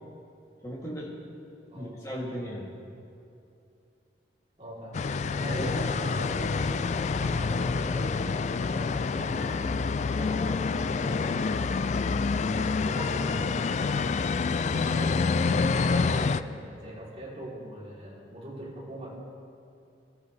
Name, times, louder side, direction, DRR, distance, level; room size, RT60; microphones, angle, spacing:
voice 1, 0.6-1.1 1.7-2.7 5.4-5.9, equal, 20° left, -5 dB, 2.8 m, -36 dB
voice 2, 4.6-5.0 5.3-9.7 10.1-11.8 12.5-13.9 14.5-19.1, equal, 35° right, -6 dB, 3.6 m, -42 dB
sound 1, 4.9-16.4, left 4 dB, 40° left, 0.3 m, -27 dB
22.5 x 13.0 x 3.4 m, 2.6 s
head